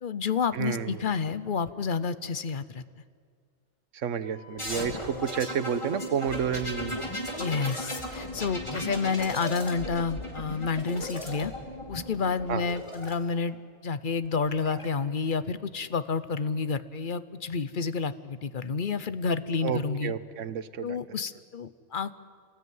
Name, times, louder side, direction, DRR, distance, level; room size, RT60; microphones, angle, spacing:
voice 1, 0.0-2.8 7.4-11.5 11.9-13.6 13.8-20.1 20.8-22.1, left 5 dB, 45° left, 14 dB, 0.9 m, -30 dB
voice 2, 0.5-1.0 3.9-7.0 12.5-12.6 19.6-21.0, right 7 dB, 80° right, 14 dB, 1.3 m, -30 dB
Wind instrument woodwind instrument, 4.2-7.8, left 6 dB, 70° left, 5.3 m, -52 dB
sound 1, 4.6-13.1 14.2-14.9, left 1 dB, 25° left, 3.1 m, -36 dB
27.5 x 19.0 x 9.5 m, 2.1 s
omnidirectional pair, 1.3 m